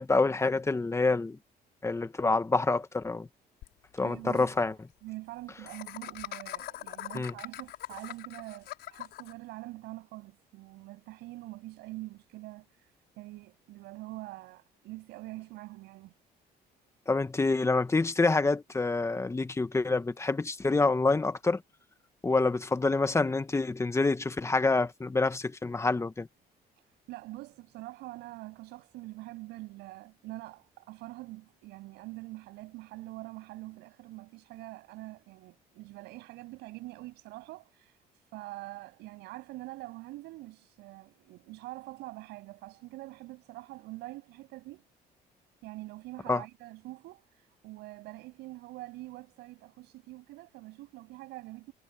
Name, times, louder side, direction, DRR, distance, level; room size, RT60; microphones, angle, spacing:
voice 1, 0.0-1.4 1.8-3.3 4.0-4.7 7.1-7.3 17.1-21.6 22.2-26.3 46.3-46.4, left 3 dB, 15° left, 1.6 m, -27 dB
Laughter, 3.6-3.7 4.0-4.1 4.3-4.5 5.7-9.3, left 14 dB, 75° left, 5.4 m, -42 dB
voice 2, 4.0-4.7 5.0-16.2 26.8-44.8 45.6-51.7, right 19 dB, 90° right, 7.3 m, -45 dB
cardioid pair, 110°, 17 cm